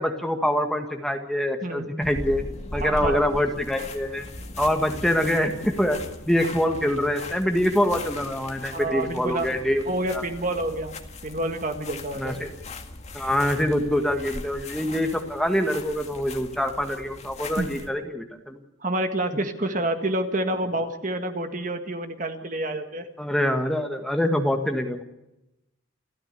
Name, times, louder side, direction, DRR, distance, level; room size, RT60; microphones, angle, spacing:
voice 1, 0.0-2.4 2.7-4.2 4.6-6.0 6.3-9.8 10.1-10.2 12.2-12.5 13.1-18.6 23.2-25.0, equal, ahead, 4 dB, 1.8 m, -25 dB
sound 1, 2.0-17.9, left 2 dB, 30° left, 1.9 m, -39 dB
voice 2, 2.8-3.2 8.7-9.5 9.9-12.4 17.6-17.7 18.8-23.1, right 1 dB, 40° right, 6 dB, 1.8 m, -28 dB
29.5 x 13.5 x 6.9 m, 0.91 s
head